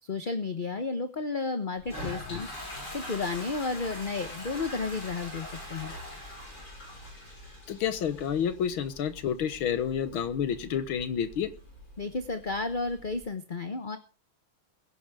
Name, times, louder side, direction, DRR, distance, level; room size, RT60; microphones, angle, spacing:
voice 1, 0.0-2.5 2.9-5.9 12.0-14.0, left 3 dB, 35° left, 8 dB, 0.8 m, -32 dB
Toilet flush, 1.8-13.2, left 1 dB, 50° left, 6.9 m, -43 dB
voice 2, 7.7-11.5, left 8 dB, 75° left, 12 dB, 2.0 m, -29 dB
22.5 x 10.5 x 3.6 m, 0.35 s
omnidirectional pair, 2.3 m